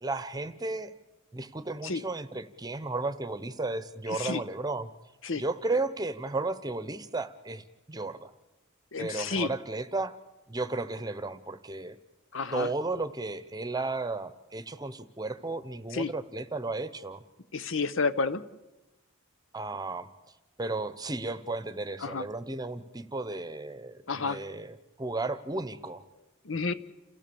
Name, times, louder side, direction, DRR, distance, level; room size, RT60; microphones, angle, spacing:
voice 1, 0.0-0.9 1.3-4.9 5.4-8.3 9.0-10.2 10.5-12.0 12.5-17.2 19.5-20.1 20.6-26.0, right 2 dB, 20° right, 13 dB, 0.9 m, -34 dB
voice 2, 4.1-4.4 5.2-5.4 8.9-9.5 12.3-12.7 15.9-16.1 17.5-18.4 22.0-22.2 24.1-24.4 26.4-26.7, left 4 dB, 70° left, 14 dB, 0.9 m, -30 dB
29.0 x 15.5 x 7.1 m, 1.1 s
head